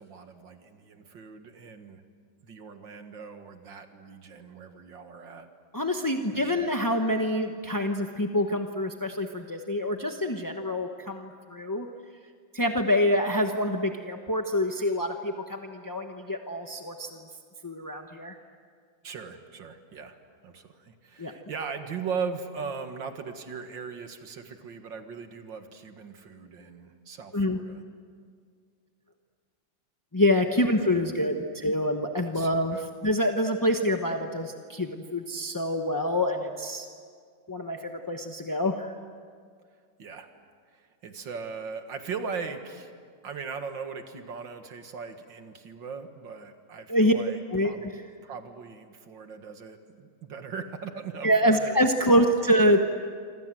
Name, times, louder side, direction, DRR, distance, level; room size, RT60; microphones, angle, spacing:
voice 1, 0.0-2.0 2.4-5.5 6.3-6.7 19.0-27.8 30.7-31.5 32.2-32.9 40.0-40.3 40.7-42.9 43.2-47.9 48.2-51.8 52.2-52.3, right 5 dB, 65° right, 6 dB, 2.4 m, -39 dB
voice 2, 5.7-11.9 12.5-17.2 17.6-18.4 21.2-21.3 27.3-27.6 30.1-36.9 37.5-39.0 46.9-47.1 47.5-47.9 51.2-52.8, equal, 15° left, 4 dB, 0.6 m, -26 dB
27.0 x 26.0 x 7.8 m, 2.1 s
omnidirectional pair, 2.2 m